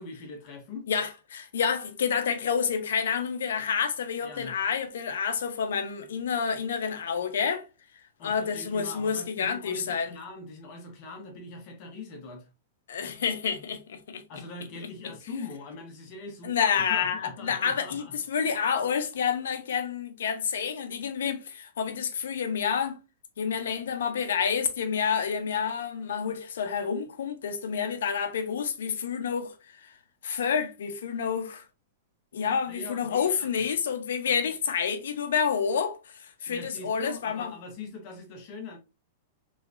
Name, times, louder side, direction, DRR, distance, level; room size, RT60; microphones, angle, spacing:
voice 1, 0.0-0.9 4.2-4.6 8.2-12.5 14.3-18.1 32.7-33.5 36.5-38.8, left 3 dB, 30° left, 0.9 m, -41 dB
voice 2, 0.9-7.7 8.2-10.1 12.9-14.2 16.4-23.0 23.4-29.9 30.2-31.6 32.3-37.5, left 7 dB, 90° left, 0.6 m, -29 dB
3.1 x 2.9 x 2.5 m
supercardioid pair, 180°, 0 cm